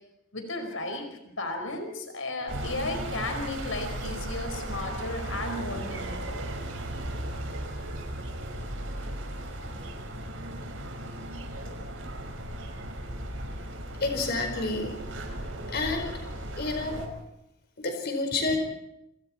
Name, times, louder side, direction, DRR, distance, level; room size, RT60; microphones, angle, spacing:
voice 1, 0.3-6.5, left 2 dB, 85° left, 5 dB, 5.2 m, -34 dB
sound 1, 2.5-17.1, right 1 dB, 80° right, 5.5 m, -36 dB
voice 2, 14.0-14.9 15.7-16.1 16.6-17.0 17.8-18.6, left 3 dB, 55° left, 4 dB, 4.8 m, -29 dB
29.0 x 27.5 x 4.4 m, 0.85 s
head